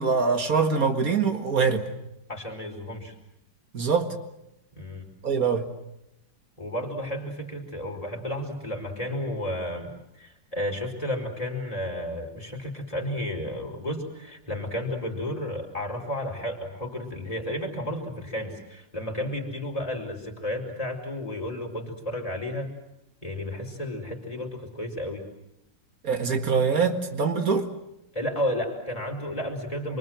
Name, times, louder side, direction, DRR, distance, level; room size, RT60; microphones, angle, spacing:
voice 1, 0.0-1.9 3.7-4.1 5.2-5.7 26.0-27.7, right 5 dB, 45° right, 6 dB, 2.2 m, -24 dB
voice 2, 2.3-3.1 4.7-5.1 6.6-22.7 23.2-25.3 28.1-30.0, left 1 dB, 15° left, -1 dB, 4.5 m, -32 dB
28.0 x 23.5 x 7.7 m, 0.85 s
omnidirectional pair, 2.1 m